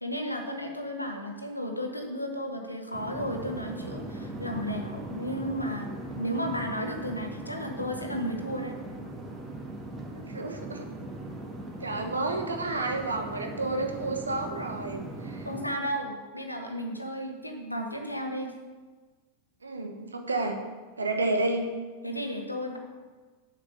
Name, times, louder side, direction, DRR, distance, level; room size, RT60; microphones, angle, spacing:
voice 1, 0.0-5.9 6.2-8.7 15.4-18.5 22.0-22.8, equal, 85° left, 3 dB, 1.2 m, -33 dB
sound 1, 2.9-15.6, right 2 dB, 20° right, 1.7 m, -39 dB
voice 2, 10.3-10.9 11.8-15.5 19.6-20.6 21.0-21.7, right 2 dB, 75° right, 4 dB, 1.2 m, -30 dB
7.3 x 6.6 x 6.9 m, 1.4 s
figure-of-eight pair, 90°, 0 cm